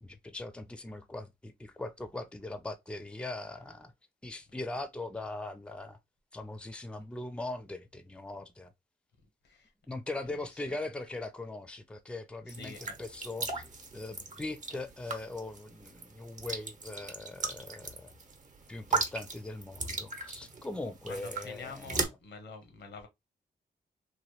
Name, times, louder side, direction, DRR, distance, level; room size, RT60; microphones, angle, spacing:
voice 1, 0.0-3.9 4.2-6.0 6.3-8.7 9.9-13.6 13.9-18.1 18.7-22.0, left 2 dB, 5° left, 0.5 m, -40 dB
voice 2, 12.5-13.0 21.1-23.1, left 4 dB, 90° left, 0.8 m, -47 dB
sound 1, 12.5-22.1, right 3 dB, 45° right, 0.9 m, -37 dB
3.0 x 2.2 x 3.0 m
cardioid pair, 65°, 18 cm